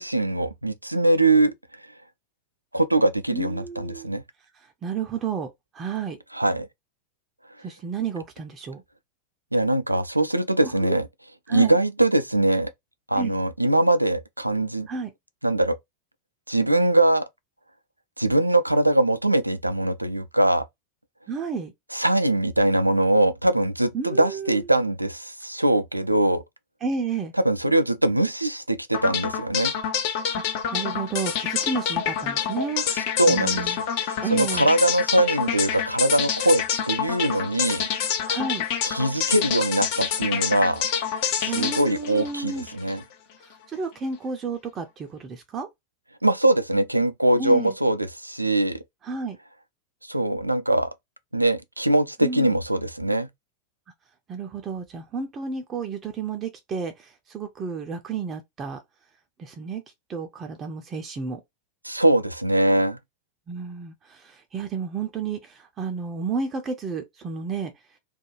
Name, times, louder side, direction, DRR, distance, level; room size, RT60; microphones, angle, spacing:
voice 1, 0.0-1.5 2.7-4.2 6.3-6.7 9.5-11.1 11.5-12.7 13.1-14.9 15.4-15.8 16.5-17.3 18.2-20.6 21.9-26.4 27.5-29.7 33.2-33.6 34.0-37.8 38.9-40.8 41.4-43.0 46.2-48.8 50.1-50.9 51.3-53.3 61.8-63.0, right 1 dB, 85° right, 0.3 m, -22 dB
voice 2, 3.3-4.1 4.5-6.2 7.6-8.8 10.6-11.0 11.5-11.8 13.1-13.4 14.9-15.1 21.3-21.7 23.9-24.7 26.8-27.3 30.3-32.8 33.3-33.8 34.2-34.7 38.2-38.7 41.5-42.7 43.4-45.7 47.4-47.7 49.0-49.4 52.2-52.5 54.3-58.8 59.4-59.8 60.1-61.4 63.5-67.7, right 5 dB, 25° right, 0.5 m, -31 dB
sound 1, 28.9-43.0, left 8 dB, 45° left, 0.6 m, -27 dB
2.5 x 2.2 x 3.0 m
figure-of-eight pair, 90°, 0 cm